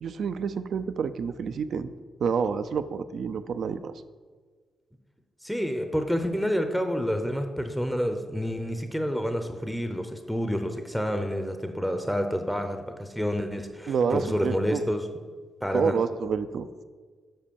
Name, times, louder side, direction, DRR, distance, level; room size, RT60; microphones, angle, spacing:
voice 1, 0.0-1.9 2.2-3.9 13.9-14.8 15.7-16.7, right 6 dB, 60° right, 12 dB, 0.4 m, -28 dB
voice 2, 5.4-15.1 15.6-16.0, equal, ahead, 6 dB, 0.6 m, -29 dB
7.5 x 5.5 x 6.9 m, 1.5 s
wide cardioid pair, 145°, 0 cm